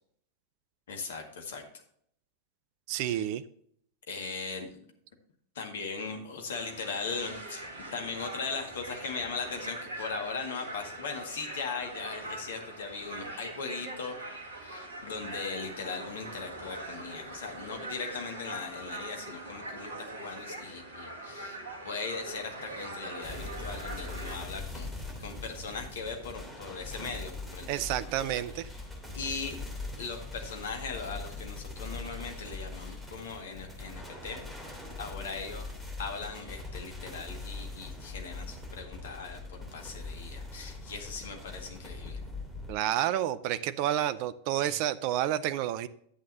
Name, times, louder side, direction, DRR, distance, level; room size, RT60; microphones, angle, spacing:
voice 1, 0.9-1.6 2.9-3.2 4.1-4.8 5.6-14.2 14.6-24.9 25.2-27.7 28.0-28.6 29.1-29.6 30.0-34.4 35.0-42.2 43.0-43.1 44.6-44.8, left 4 dB, 60° left, 4 dB, 1.9 m, -39 dB
voice 2, 2.9-3.4 27.7-28.7 42.7-45.9, right 12 dB, 45° right, 15 dB, 0.5 m, -30 dB
sound 1, 6.5-24.4, right 1 dB, 70° right, 1.9 m, -42 dB
sound 2, 23.2-42.7, left 2 dB, ahead, 3.2 m, -42 dB
11.0 x 8.4 x 2.8 m, 0.65 s
figure-of-eight pair, 90°, 0 cm